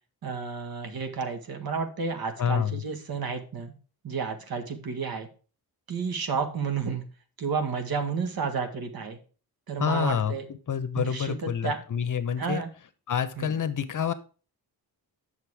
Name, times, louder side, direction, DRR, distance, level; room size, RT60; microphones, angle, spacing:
voice 1, 0.2-3.7 4.0-5.3 5.9-7.1 7.4-9.2 9.7-10.4 11.0-11.8 12.4-12.7 13.4-13.5, right 5 dB, 65° right, 6 dB, 2.0 m, -31 dB
voice 2, 2.4-2.8 9.8-10.3 10.7-12.6 13.1-14.1, left 8 dB, 50° left, 12 dB, 1.0 m, -27 dB
9.0 x 6.6 x 4.8 m, 0.37 s
cardioid pair, 110°, 39 cm